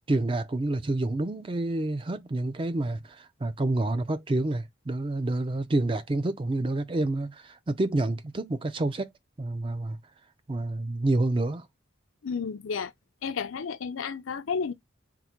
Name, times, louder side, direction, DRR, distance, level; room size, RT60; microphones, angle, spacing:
voice 1, 0.1-9.1 9.4-10.0 10.5-11.7, right 2 dB, 25° right, 0.4 m, -28 dB
voice 2, 12.2-12.9 13.2-14.7, left 5 dB, 85° left, 0.5 m, -32 dB
3.7 x 2.1 x 4.4 m
head